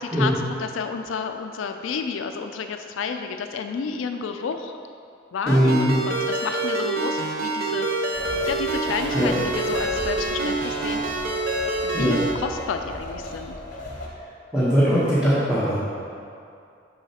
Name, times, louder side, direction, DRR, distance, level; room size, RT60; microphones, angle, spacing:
voice 1, 0.0-4.8 5.3-7.9 8.4-11.0 11.8-13.6, left 5 dB, 80° left, 6 dB, 0.3 m, -30 dB
voice 2, 5.5-5.9 9.1-9.3 11.9-12.2 14.5-16.0, equal, 5° right, -12 dB, 1.0 m, -20 dB
Ringtone, 5.5-12.3, right 2 dB, 50° right, 0.7 m, -26 dB
sound 1, 8.1-14.1, left 1 dB, 45° left, 0.8 m, -37 dB
6.9 x 5.5 x 2.8 m, 2.4 s
head